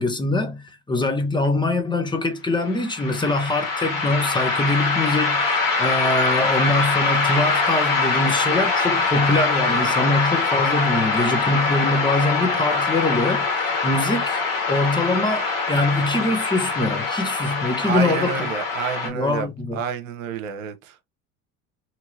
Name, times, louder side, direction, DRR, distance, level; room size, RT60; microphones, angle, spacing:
voice 1, 0.0-14.4 14.7-18.5 19.0-19.8, left 2 dB, 10° left, 0.8 m, -23 dB
sound 1, 2.7-19.1, left 4 dB, 50° left, 1.7 m, -23 dB
voice 2, 17.8-21.0, right 7 dB, 70° right, 0.7 m, -29 dB
2.8 x 2.7 x 2.6 m
figure-of-eight pair, 65°, 40 cm